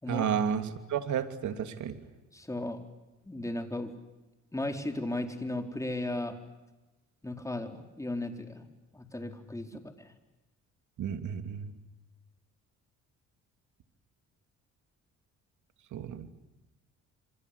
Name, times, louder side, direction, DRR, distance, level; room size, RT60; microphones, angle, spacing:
voice 1, 0.1-2.0 11.0-11.7 15.9-16.3, right 8 dB, 75° right, 8 dB, 2.8 m, -32 dB
voice 2, 2.3-2.8 3.3-3.9 4.5-6.3 7.2-8.6 8.9-9.9, left 1 dB, 10° left, 5 dB, 4.2 m, -35 dB
27.0 x 26.5 x 8.4 m, 1.1 s
cardioid pair, 90°, 30 cm